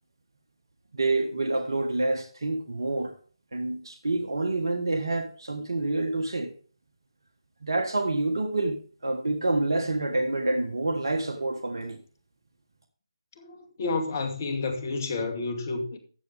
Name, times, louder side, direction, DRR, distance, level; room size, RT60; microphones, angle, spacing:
voice 1, 0.9-3.1 3.5-6.5 7.6-12.0, right 2 dB, 60° right, 1.5 m, -27 dB
voice 2, 13.4-16.0, left 3 dB, 35° left, 2.2 m, -30 dB
14.0 x 8.2 x 3.5 m
figure-of-eight pair, 150°, 3 cm